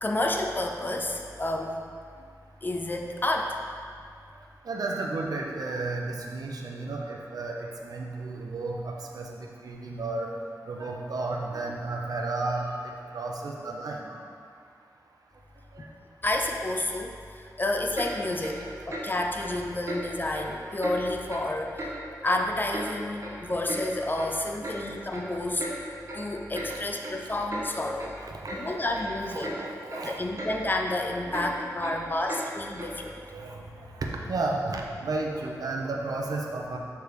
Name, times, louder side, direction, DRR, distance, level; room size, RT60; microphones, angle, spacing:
voice 1, 0.0-1.8 2.6-3.6 16.2-18.6 18.9-21.9 22.2-25.7 26.1-28.1 28.5-29.6 30.0-33.2, left 1 dB, 30° left, 2 dB, 0.5 m, -30 dB
voice 2, 4.6-10.3 10.7-14.1 15.7-15.8 24.3-24.8 28.2-28.8 29.3-30.2 31.2-32.2 33.3-33.6 33.9-36.8, right 3 dB, 70° right, 0 dB, 0.7 m, -33 dB
Clock, 17.9-18.1 18.4-18.6 18.9-19.1 19.4-19.5 19.9-20.0 20.3-20.5 20.8-21.0 21.3-21.5 21.8-21.9 22.2-22.9 23.2-23.3 23.7-23.8 24.2-24.3 24.6-24.8 25.1-25.3 25.6-25.7 26.1-26.2 26.5-26.7 27.0-27.2 27.5-27.7 28.0-28.1 28.5-28.6 28.9-29.1 29.4-29.6 29.9-30.0 30.4-30.5 30.8-31.0 31.3-31.5 31.8-31.9 32.3-32.4 32.8-32.9, right 1 dB, 50° right, 1.3 m, -36 dB
6.8 x 3.5 x 4.7 m, 2.2 s
wide cardioid pair, 85°, 7 cm